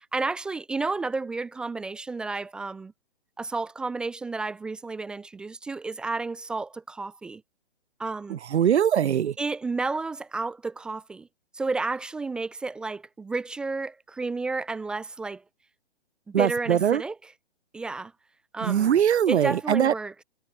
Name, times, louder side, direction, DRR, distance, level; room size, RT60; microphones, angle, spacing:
voice 1, 0.1-2.9 3.4-7.4 8.0-8.4 9.4-11.3 11.5-15.4 16.3-17.3 17.7-18.1 18.5-18.9 19.3-20.1, right 3 dB, 5° right, 0.4 m, -31 dB
voice 2, 8.3-9.3 16.3-17.0 18.6-19.9, right 9 dB, 80° right, 0.7 m, -22 dB
hypercardioid pair, 145°, 33 cm